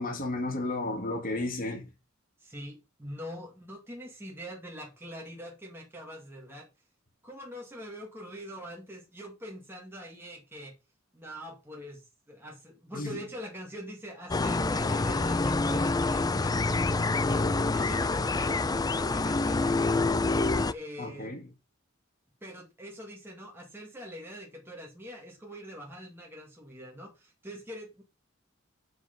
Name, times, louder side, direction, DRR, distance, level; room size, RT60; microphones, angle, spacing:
voice 1, 0.0-1.9 12.9-13.2 21.0-21.4, left 2 dB, 45° left, 2.5 m, -33 dB
voice 2, 2.4-6.7 7.2-10.7 11.1-20.0 20.7-21.3 22.4-28.0, equal, 10° right, 2.0 m, -44 dB
sound 1, 14.3-20.7, left 3 dB, 20° left, 0.4 m, -27 dB
8.0 x 6.6 x 5.3 m
head